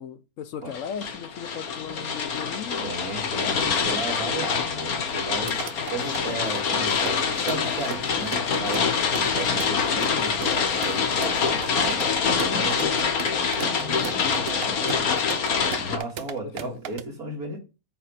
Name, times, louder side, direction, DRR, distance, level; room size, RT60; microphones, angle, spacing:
voice 1, 0.0-2.9 16.4-16.8, left 7 dB, 65° left, 1.1 m, -37 dB
sound 1, 0.7-16.0, left 6 dB, 85° left, 1.6 m, -25 dB
voice 2, 2.8-8.9 9.2-13.1 13.7-15.2 15.7-17.6, right 2 dB, 80° right, 3.0 m, -35 dB
sound 2, 5.4-17.0, right 8 dB, 55° right, 0.7 m, -38 dB
9.1 x 3.4 x 6.5 m
omnidirectional pair, 1.5 m